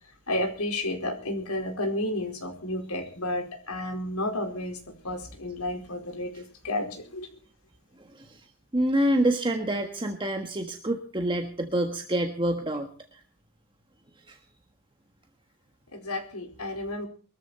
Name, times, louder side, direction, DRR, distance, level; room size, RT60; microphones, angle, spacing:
voice 1, 0.3-7.3 15.9-17.1, left 1 dB, 85° left, 3 dB, 4.5 m, -32 dB
voice 2, 8.7-13.2 14.3-14.4, right 1 dB, 20° right, 4 dB, 1.5 m, -27 dB
23.0 x 14.0 x 4.3 m, 0.42 s
head